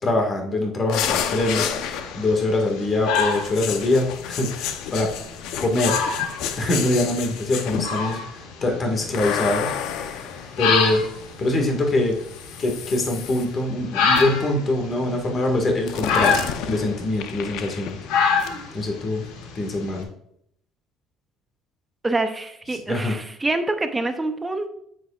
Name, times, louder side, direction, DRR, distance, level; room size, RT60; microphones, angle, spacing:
voice 1, 0.0-5.1 5.6-6.0 6.6-9.7 10.2-10.3 10.6-11.0 11.4-12.2 12.6-16.4 16.7-18.0 18.7-19.2 19.5-20.1 22.9-23.1, left 2 dB, 30° left, 2 dB, 1.8 m, -23 dB
sound 1, 0.9-2.4 3.1-8.1 9.1-11.3 12.3-13.5 14.1-14.5 15.9-18.1 18.4-18.6, left 8 dB, 70° left, 0.8 m, -30 dB
sound 2, 1.3-20.0, left 5 dB, 90° left, 1.7 m, -28 dB
voice 2, 22.0-24.7, right 2 dB, 10° right, 8 dB, 0.6 m, -26 dB
9.3 x 7.8 x 2.4 m, 0.71 s
cardioid pair, 150°, 0 cm